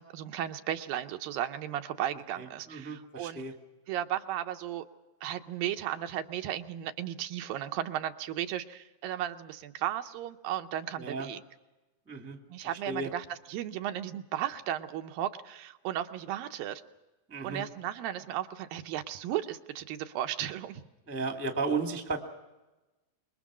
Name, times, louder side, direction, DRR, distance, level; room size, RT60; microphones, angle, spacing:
voice 1, 0.0-3.4 3.9-4.8 5.2-11.4 12.5-16.8 17.4-20.8, right 11 dB, 80° right, 7 dB, 2.6 m, -35 dB
voice 2, 2.4-3.5 11.0-11.3 12.1-12.4 12.9-13.1 17.3-17.6 21.1-22.2, right 3 dB, 5° right, 3 dB, 1.2 m, -34 dB
25.5 x 22.0 x 6.2 m, 1.1 s
omnidirectional pair, 4.1 m